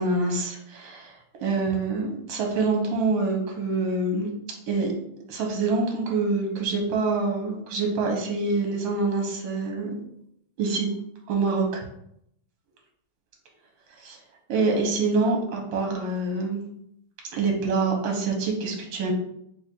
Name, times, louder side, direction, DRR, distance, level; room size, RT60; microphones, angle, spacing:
voice 1, 0.0-4.3 4.7-4.9 5.3-9.9 10.6-10.9 11.3-11.9 14.0-14.2 14.5-16.6 17.3-19.1, right 3 dB, 65° right, 1 dB, 1.5 m, -26 dB
3.7 x 2.5 x 4.3 m, 0.75 s
omnidirectional pair, 2.4 m